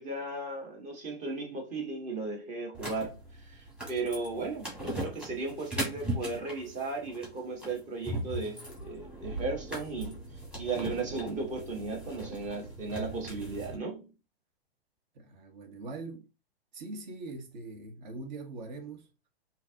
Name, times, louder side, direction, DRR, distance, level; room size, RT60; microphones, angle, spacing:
voice 1, 0.0-14.1, right 3 dB, 25° right, 1.2 m, -36 dB
sound 1, 2.7-13.7, right 1 dB, 5° right, 1.5 m, -39 dB
voice 2, 15.1-16.2 16.7-19.1, right 3 dB, 45° right, 1.2 m, -42 dB
3.7 x 2.8 x 2.6 m
figure-of-eight pair, 115°, 31 cm